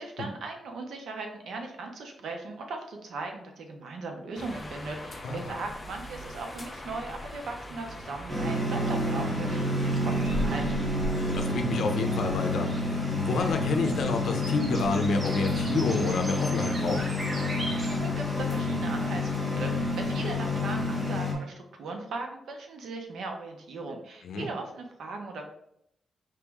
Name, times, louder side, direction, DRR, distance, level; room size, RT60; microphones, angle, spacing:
voice 1, 0.0-10.7 17.9-25.4, right 3 dB, 70° right, 3 dB, 0.7 m, -38 dB
sound 1, 4.3-20.9, left 1 dB, 15° left, 0.5 m, -41 dB
sound 2, 8.3-21.3, left 2 dB, 5° right, 1.2 m, -29 dB
sound 3, 9.2-18.0, right 1 dB, 25° right, 0.7 m, -43 dB
voice 2, 11.3-17.0 24.2-24.5, left 3 dB, 65° left, 5 dB, 0.6 m, -29 dB
4.7 x 3.0 x 3.5 m, 0.75 s
wide cardioid pair, 175°, 0 cm